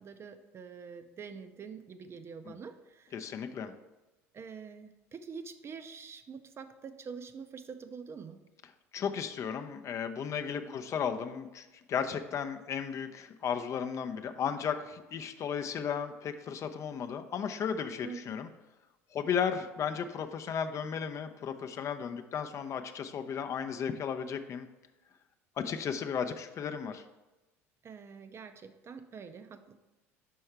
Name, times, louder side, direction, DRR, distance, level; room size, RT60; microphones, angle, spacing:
voice 1, 0.0-3.3 4.3-8.4 10.7-10.8 18.0-18.4 27.8-29.7, right 6 dB, 35° right, 10 dB, 0.5 m, -46 dB
voice 2, 3.1-3.7 8.9-18.5 19.1-24.7 25.6-27.0, left 7 dB, 40° left, 8 dB, 0.5 m, -35 dB
5.4 x 4.6 x 4.5 m, 1.1 s
hypercardioid pair, 70°, 8 cm